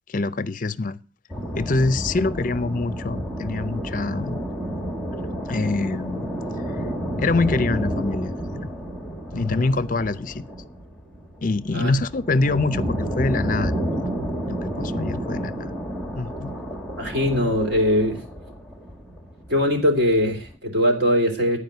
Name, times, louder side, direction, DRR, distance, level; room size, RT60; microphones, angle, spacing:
voice 1, 0.1-1.0 1.6-4.4 5.5-6.3 6.7-6.8 7.2-8.7 9.3-10.4 11.4-14.1 14.5-15.7 16.1-16.5, left 3 dB, 45° left, 0.5 m, -25 dB
sound 1, 1.3-20.6, equal, ahead, 1.3 m, -30 dB
voice 2, 17.0-18.2 19.5-21.6, equal, 60° right, 2.7 m, -21 dB
11.0 x 4.9 x 7.9 m
head